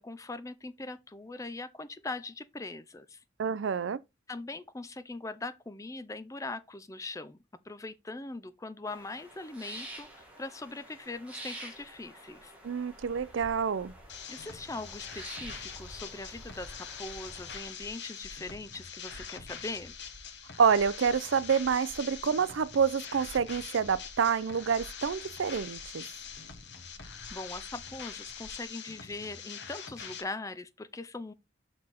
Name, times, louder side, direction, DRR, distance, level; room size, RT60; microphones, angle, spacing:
voice 1, 0.0-3.2 4.3-7.4 7.6-12.6 14.3-20.0 27.3-31.3, left 2 dB, 15° left, 0.4 m, -41 dB
voice 2, 3.4-4.0 12.6-13.9 20.6-26.0, right 6 dB, 65° right, 0.4 m, -28 dB
sound 1, 8.9-17.6, right 1 dB, 5° right, 2.0 m, -48 dB
sound 2, 14.1-30.2, left 7 dB, 55° left, 1.1 m, -44 dB
sound 3, 15.3-28.7, equal, 30° right, 2.4 m, -55 dB
6.3 x 4.4 x 4.1 m
head